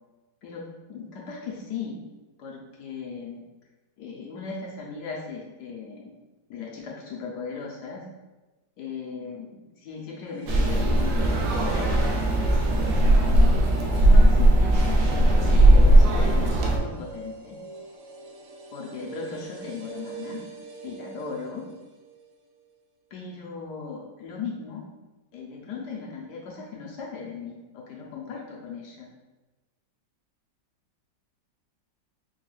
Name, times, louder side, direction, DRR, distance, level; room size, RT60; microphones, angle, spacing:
voice 1, 0.4-2.0 2.4-3.4 4.0-6.1 6.5-8.1 8.8-9.5 9.8-12.2 13.0-17.6 18.7-20.4 20.8-21.7 23.1-24.9 25.3-29.1, left 5 dB, 70° left, -2 dB, 1.1 m, -37 dB
sound 1, 10.2-22.3 22.6-22.7, right 3 dB, 90° right, 0.6 m, -43 dB
sound 2, 10.5-16.8, right 1 dB, 70° right, 1.1 m, -18 dB
4.3 x 2.2 x 3.2 m, 1.1 s
omnidirectional pair, 2.0 m